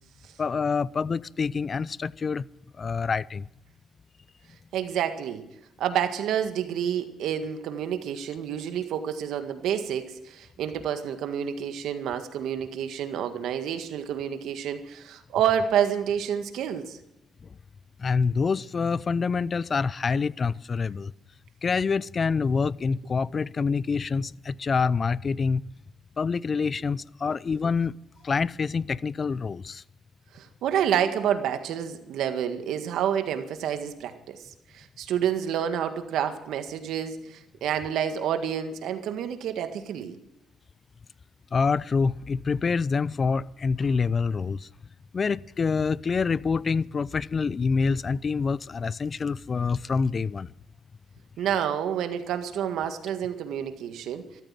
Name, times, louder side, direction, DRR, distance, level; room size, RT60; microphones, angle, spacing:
voice 1, 0.4-2.4 2.8-3.4 18.0-21.1 21.6-25.6 26.2-27.9 28.2-29.8 41.5-44.7 45.1-50.5, left 5 dB, 40° left, 0.5 m, -26 dB
voice 2, 4.7-5.4 5.8-17.0 30.3-34.4 34.7-40.2 51.4-54.4, right 9 dB, 80° right, 1.8 m, -29 dB
14.0 x 13.5 x 7.6 m
cardioid pair, 90°, 0 cm